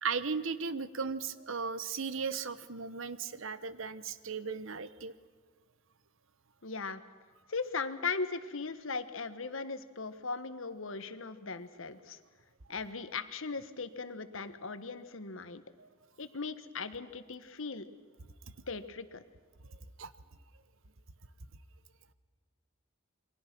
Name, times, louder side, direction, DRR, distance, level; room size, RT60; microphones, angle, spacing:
voice 1, 0.0-5.1 15.8-15.9 19.7-20.1, right 5 dB, 70° right, 14 dB, 1.1 m, -36 dB
voice 2, 6.6-7.0 7.5-12.2 12.7-15.6 16.2-17.8 18.7-19.2, left 4 dB, 70° left, 11 dB, 1.4 m, -38 dB
28.0 x 23.0 x 6.2 m, 1.5 s
head